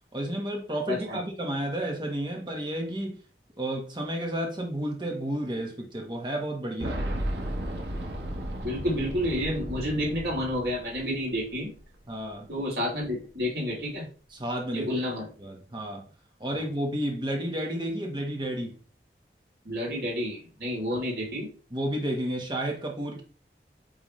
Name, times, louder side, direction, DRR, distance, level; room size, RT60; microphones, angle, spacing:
voice 1, 0.1-3.2 3.6-7.0 12.1-12.5 14.3-14.9 15.4-16.1 16.4-18.8 21.7-23.2, right 1 dB, 25° right, 1.3 m, -31 dB
voice 2, 0.8-1.2 8.6-11.7 12.5-14.1 14.7-15.3 19.6-21.5, equal, 70° right, 3.0 m, -30 dB
Boom, 6.8-11.5 11.8-11.9 13.0-13.1, right 1 dB, 85° right, 1.3 m, -34 dB
8.9 x 3.6 x 3.2 m
head